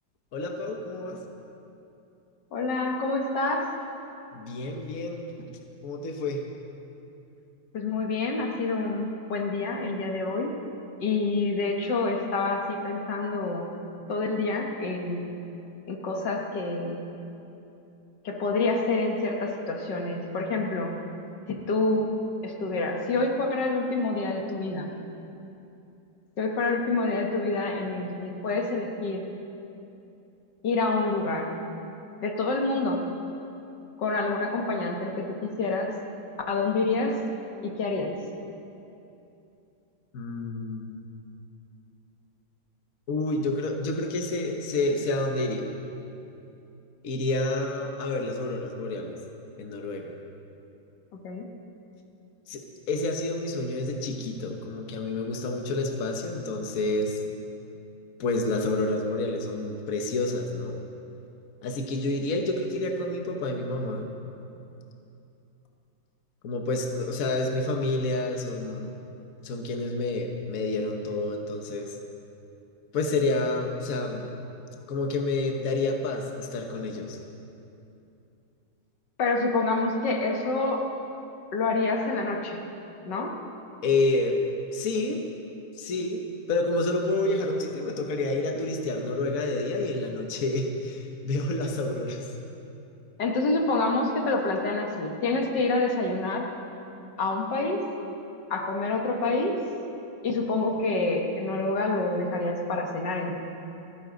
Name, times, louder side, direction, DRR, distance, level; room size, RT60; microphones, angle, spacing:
voice 1, 0.3-1.2 4.3-5.5 5.8-6.4 40.1-41.0 43.1-45.7 47.0-49.2 49.6-50.1 52.5-52.6 52.9-57.2 58.2-60.8 61.6-64.1 66.4-68.9 69.4-72.0 72.9-74.4 74.9-77.2 83.8-84.4 84.7-85.2 85.7-86.2 86.5-92.3, left 2 dB, 55° left, 3 dB, 1.4 m, -29 dB
voice 2, 2.5-3.7 7.7-10.5 11.0-13.7 14.1-15.3 15.9-17.1 18.2-21.0 21.5-22.1 22.4-24.9 26.4-29.2 30.6-31.5 32.2-33.0 34.0-35.9 36.5-37.2 37.6-38.2 51.1-51.5 79.2-80.9 81.5-82.6 83.1-83.4 93.2-96.5 97.2-97.8 98.5-99.6 100.2-103.4, left 3 dB, 80° left, 2 dB, 2.0 m, -27 dB
29.5 x 10.0 x 3.9 m, 2.8 s
omnidirectional pair, 1.9 m